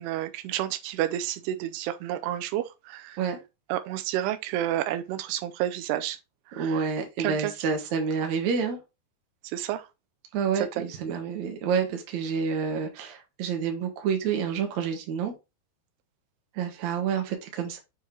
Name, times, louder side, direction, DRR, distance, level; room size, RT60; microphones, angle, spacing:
voice 1, 0.0-3.2 3.7-6.2 6.5-6.9 7.2-7.5 9.4-9.9 10.6-10.8, right 12 dB, 85° right, 2.7 m, -30 dB
voice 2, 6.6-8.8 10.3-15.3 16.5-17.8, right 6 dB, 60° right, 2.3 m, -28 dB
7.7 x 4.6 x 2.9 m
omnidirectional pair, 4.6 m